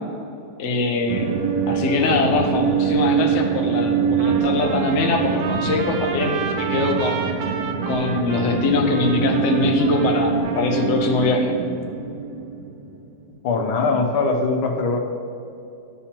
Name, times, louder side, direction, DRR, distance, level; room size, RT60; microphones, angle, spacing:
voice 1, 0.6-1.3 1.7-7.3 7.9-11.6, left 3 dB, 60° left, 2 dB, 0.7 m, -22 dB
sound 1, 1.1-13.1, right 7 dB, 85° right, 0.8 m, -24 dB
Trumpet, 4.2-11.2, right 6 dB, 65° right, 1.2 m, -32 dB
voice 2, 13.4-15.0, left 3 dB, 90° left, 3 dB, 1.6 m, -21 dB
11.5 x 5.6 x 2.9 m, 2.7 s
omnidirectional pair, 2.2 m